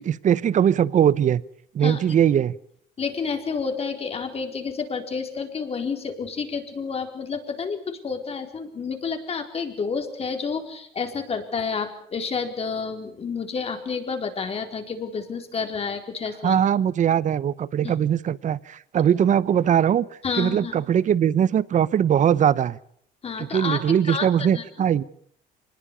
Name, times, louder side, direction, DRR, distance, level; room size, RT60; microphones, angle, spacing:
voice 1, 0.0-1.4 1.7-2.6 16.4-20.1 20.4-22.8 23.4-25.0, right 9 dB, 45° right, 20 dB, 1.0 m, -21 dB
voice 2, 3.0-16.6 17.8-18.0 20.2-20.8 23.2-23.8 24.1-24.6, left 5 dB, 35° left, 6 dB, 4.3 m, -30 dB
25.0 x 21.0 x 7.0 m, 0.64 s
cardioid pair, 110°, 17 cm